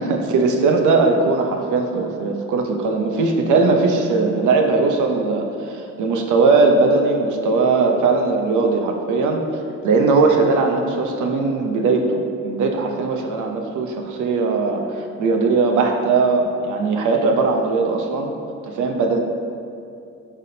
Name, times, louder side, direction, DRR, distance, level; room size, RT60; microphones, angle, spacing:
voice 1, 0.0-9.4 9.8-18.3 18.6-19.2, right 3 dB, 75° right, 3 dB, 0.8 m, -19 dB
10.5 x 3.6 x 2.8 m, 2.6 s
cardioid pair, 90°, 30 cm